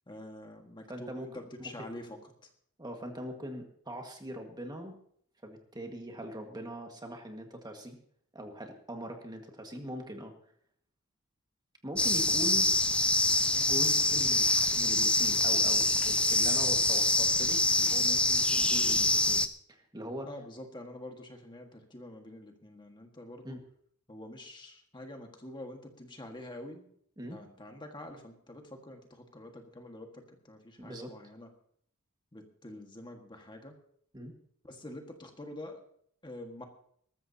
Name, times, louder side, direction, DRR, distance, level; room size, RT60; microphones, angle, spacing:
voice 1, 0.1-2.5 20.3-23.6 24.1-26.9 27.2-31.5 32.3-33.7 34.6-35.8 36.2-36.6, left 1 dB, 20° left, 3 dB, 1.6 m, -46 dB
voice 2, 0.9-1.3 1.8-1.9 2.8-4.9 5.4-8.0 8.3-10.3 11.8-12.7 13.5-20.3 23.4-23.6 27.2-27.4 30.8-31.1 34.1-34.3, equal, 20° right, 3 dB, 1.7 m, -41 dB
sound 1, 12.0-19.5, left 2 dB, 5° left, 0.5 m, -25 dB
20.5 x 13.5 x 2.8 m, 0.64 s
head